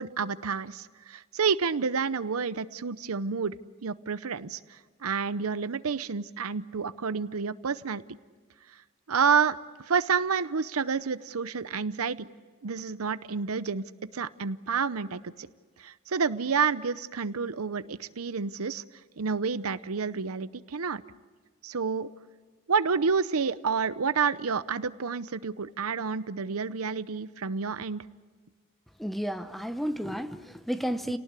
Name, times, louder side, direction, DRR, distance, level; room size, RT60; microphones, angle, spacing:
voice 1, 0.0-3.5 3.8-8.0 9.1-12.3 12.6-13.8 14.1-15.5 15.8-18.8 19.2-21.0 21.6-22.1 22.7-28.0, right 5 dB, 85° right, 15 dB, 0.7 m, -29 dB
voice 2, 29.0-31.2, equal, ahead, 10 dB, 0.8 m, -32 dB
30.0 x 18.5 x 8.4 m, 1.5 s
head